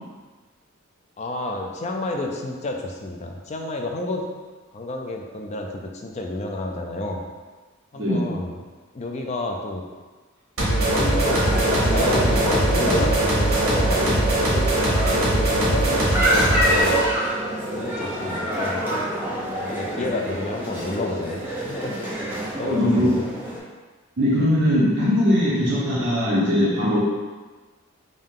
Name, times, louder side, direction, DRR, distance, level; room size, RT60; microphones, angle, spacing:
voice 1, 1.2-4.3 4.7-7.2 7.9-8.6 8.9-9.8 10.6-14.5 15.1-17.1 17.7-18.9 19.5-21.4 21.6-22.0 22.5-23.2, left 2 dB, 30° left, 2 dB, 0.3 m, -30 dB
voice 2, 7.9-8.4 15.1-15.2 22.6-23.1 24.2-27.0, left 1 dB, 55° right, -8 dB, 0.8 m, -20 dB
sound 1, 10.6-17.1, right 1 dB, 75° right, 1.2 m, -21 dB
sound 2, 11.2-23.6, equal, 10° right, 0.7 m, -27 dB
3.7 x 2.6 x 3.6 m, 1.4 s
head